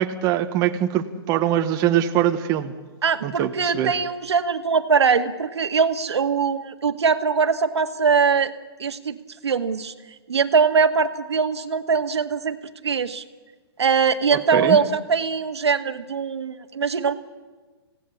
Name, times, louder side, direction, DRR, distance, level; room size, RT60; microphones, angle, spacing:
voice 1, 0.0-2.7 3.2-4.0 14.5-14.8, right 11 dB, 25° right, 5 dB, 1.3 m, -22 dB
voice 2, 3.0-8.5 8.8-9.2 9.4-9.9 10.3-12.6 12.8-13.2 13.8-17.1, right 5 dB, 90° right, 8 dB, 1.9 m, -21 dB
28.0 x 17.5 x 8.6 m, 1.3 s
hypercardioid pair, 150°, 14 cm